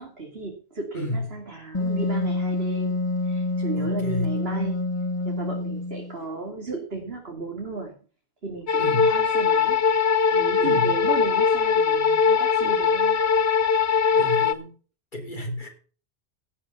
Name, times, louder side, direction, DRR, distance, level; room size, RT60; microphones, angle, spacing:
voice 1, 0.0-4.9 5.2-7.9 8.4-9.8 10.2-13.2, right 3 dB, 70° right, 0 dB, 3.1 m, -35 dB
voice 2, 0.9-1.4 3.8-4.4 8.8-9.1 10.6-10.9 14.1-14.7 15.1-15.7, left 1 dB, 50° left, 2 dB, 4.3 m, -31 dB
Wind instrument woodwind instrument, 1.7-6.2, left 2 dB, 30° left, 1.0 m, -27 dB
sound 1, 8.7-14.5, left 6 dB, 85° left, 1.3 m, -21 dB
17.5 x 7.6 x 5.5 m, 0.39 s
omnidirectional pair, 1.1 m